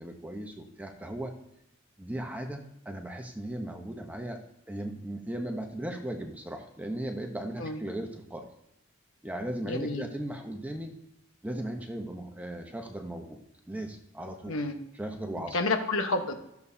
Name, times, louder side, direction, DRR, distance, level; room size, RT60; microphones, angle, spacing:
voice 1, 0.0-1.3 2.0-4.4 4.7-8.5 9.2-10.9 11.4-13.4 13.7-14.5 15.0-15.6, right 1 dB, 5° right, 3 dB, 0.8 m, -37 dB
voice 2, 9.6-10.0 14.5-14.8 15.4-16.3, left 3 dB, 75° left, 4 dB, 1.1 m, -30 dB
13.5 x 6.9 x 2.7 m, 0.83 s
head